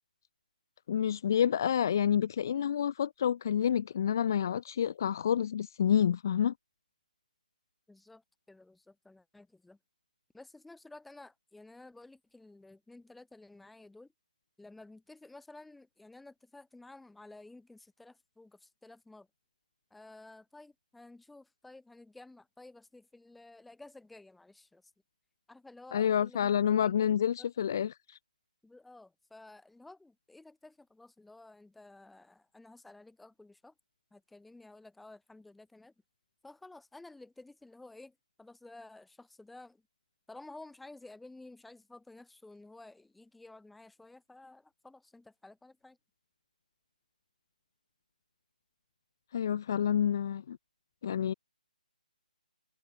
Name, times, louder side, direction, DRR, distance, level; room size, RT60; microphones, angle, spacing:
voice 1, 0.9-6.5 25.9-28.2 49.3-50.6 51.0-51.3, left 9 dB, 25° left, 0.9 m, -28 dB
voice 2, 7.9-9.8 10.3-14.1 14.6-19.3 19.9-24.9 25.5-27.1 27.4-27.5 28.6-33.7 34.1-35.9 36.4-39.8 40.3-46.0, left 2 dB, ahead, 3.1 m, -53 dB
hypercardioid pair, 180°, 5 cm